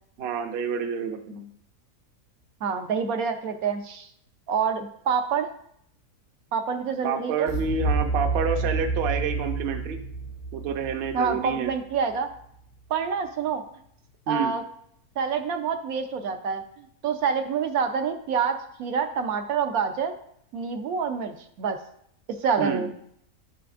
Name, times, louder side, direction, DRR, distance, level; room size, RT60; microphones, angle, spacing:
voice 1, 0.2-1.5 7.0-10.0 10.5-11.7 14.3-14.5 22.6-22.9, right 6 dB, 55° right, 5 dB, 0.8 m, -28 dB
voice 2, 2.6-4.1 4.5-5.5 6.5-7.5 11.1-12.3 12.9-13.6 14.3-14.6 15.2-16.6 17.0-20.1 20.5-21.8 22.3-22.9, right 6 dB, 75° right, 6 dB, 1.1 m, -27 dB
sound 1, 7.5-12.3, right 3 dB, 70° left, 0.5 m, -29 dB
9.4 x 5.8 x 2.5 m, 0.69 s
omnidirectional pair, 1.6 m